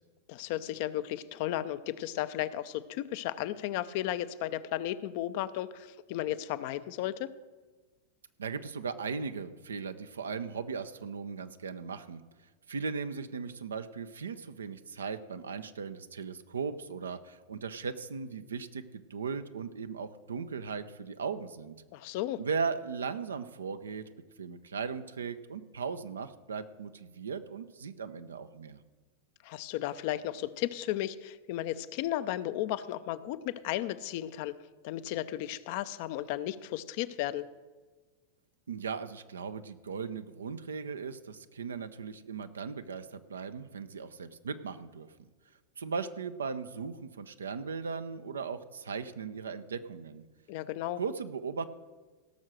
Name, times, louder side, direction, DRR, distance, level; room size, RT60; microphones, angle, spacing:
voice 1, 0.3-7.3 21.9-22.4 29.4-34.6 34.8-37.5 50.5-51.0, left 13 dB, 50° left, 13 dB, 0.6 m, -34 dB
voice 2, 8.4-12.2 12.7-21.7 22.4-24.1 24.4-28.8 38.7-45.3 45.8-50.2 51.0-51.6, right 5 dB, 75° right, 10 dB, 0.7 m, -38 dB
17.0 x 6.4 x 6.2 m, 1.3 s
figure-of-eight pair, 90°, 0 cm